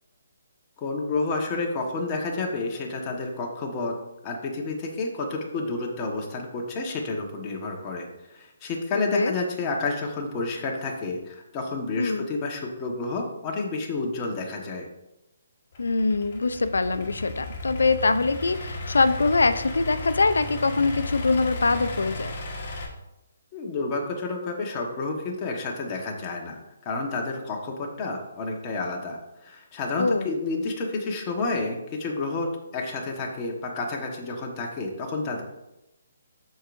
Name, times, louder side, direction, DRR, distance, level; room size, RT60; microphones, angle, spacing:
voice 1, 0.8-4.0 4.2-8.1 8.3-14.9 23.5-35.4, left 3 dB, 25° left, 0 dB, 1.3 m, -30 dB
Idling / Accelerating revving vroom, 15.7-22.9, left 2 dB, 40° left, 1.5 m, -35 dB
voice 2, 15.8-22.3 30.0-30.3, left 3 dB, 85° left, 12 dB, 0.5 m, -23 dB
13.5 x 4.7 x 2.6 m, 0.92 s
hypercardioid pair, 155°, 0 cm